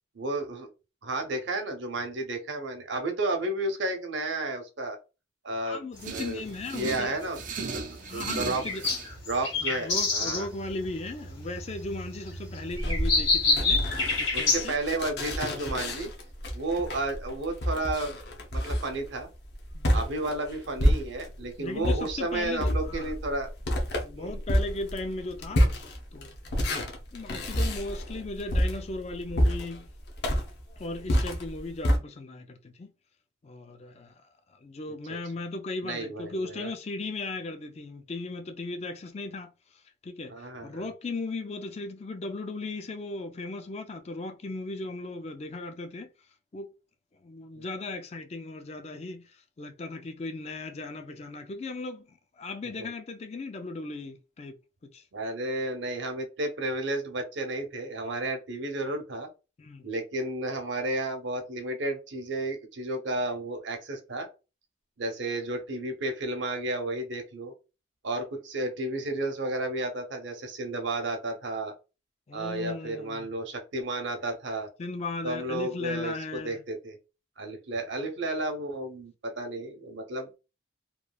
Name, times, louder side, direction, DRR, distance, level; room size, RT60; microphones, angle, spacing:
voice 1, 0.1-0.7 1.0-5.0 5.4-5.8 6.1-6.4 6.7-7.4 7.7-8.6 9.3-10.5 14.3-16.1 16.5-18.2 18.5-19.3 19.9-23.5 24.1-24.4 34.9-35.2 35.8-36.7 40.3-40.9 47.5-47.7 52.8-52.9 55.1-59.3 59.8-64.3 65.0-67.5 68.0-71.7 72.3-74.7 75.2-77.0 77.4-80.4, right 2 dB, 70° right, 0.7 m, -32 dB
voice 2, 5.6-7.2 8.1-8.8 9.6-13.8 14.2-14.8 19.7-19.9 21.6-23.1 24.0-26.3 27.1-29.9 30.8-32.9 33.4-34.1 34.6-39.5 40.0-46.1 46.5-46.7 47.2-49.3 49.6-54.6 54.9-55.0 59.6-59.8 72.3-73.3 74.8-76.6, left 2 dB, 35° left, 0.4 m, -37 dB
sound 1, 6.0-14.6, left 3 dB, 75° left, 1.5 m, -29 dB
sound 2, 6.0-9.1, right 5 dB, 45° right, 0.4 m, -37 dB
sound 3, 12.7-21.4 21.8-32.0, equal, 55° left, 0.7 m, -29 dB
3.0 x 2.3 x 2.3 m
head